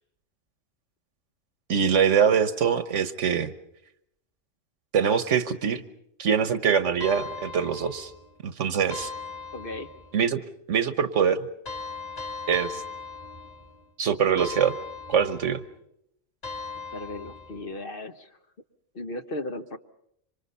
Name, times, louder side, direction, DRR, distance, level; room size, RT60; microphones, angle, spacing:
voice 1, 1.7-3.5 4.9-5.8 6.2-8.1 8.4-9.1 10.1-10.4 10.7-11.4 12.5-12.8 14.0-14.7 15.1-15.6, right 7 dB, 75° right, 12 dB, 1.4 m, -23 dB
sound 1, 7.0-8.3 8.9-10.2 11.6-13.8 14.4-15.7 16.4-17.7, left 4 dB, 30° left, 2.4 m, -38 dB
voice 2, 9.5-9.9 16.9-18.4 18.9-19.8, left 2 dB, 50° left, 8 dB, 1.2 m, -36 dB
26.5 x 25.5 x 5.6 m, 0.75 s
omnidirectional pair, 1.3 m